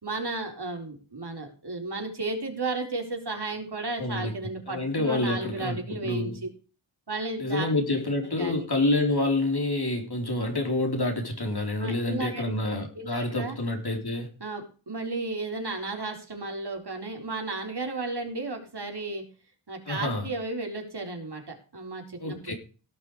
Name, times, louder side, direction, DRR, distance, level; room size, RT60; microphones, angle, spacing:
voice 1, 0.0-6.5 7.1-7.7 8.4-8.6 11.8-12.5 12.9-13.5 14.4-19.2 19.7-22.5, right 3 dB, 50° right, 4.5 m, -34 dB
voice 2, 4.0-4.3 4.7-6.4 7.4-14.3 19.9-20.3 22.2-22.5, left 2 dB, 50° left, 4.2 m, -28 dB
17.5 x 6.0 x 5.0 m
cardioid pair, 45°, 49 cm